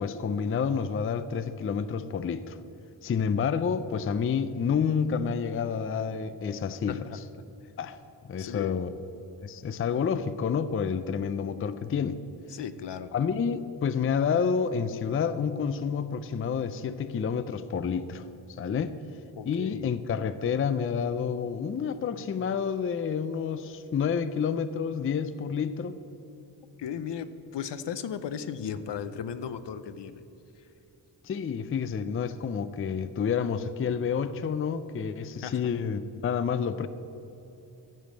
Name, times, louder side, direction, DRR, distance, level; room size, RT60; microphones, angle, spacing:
voice 1, 0.0-2.6 3.0-7.1 7.8-8.0 8.3-8.9 9.4-12.2 13.1-19.0 19.5-26.0 31.2-36.9, left 6 dB, 30° left, 13 dB, 0.4 m, -29 dB
voice 2, 8.4-8.7 12.5-13.1 19.4-19.9 26.8-30.2 35.4-35.6, left 8 dB, 70° left, 12 dB, 0.7 m, -36 dB
14.5 x 5.1 x 7.5 m, 3.0 s
wide cardioid pair, 125°, 43 cm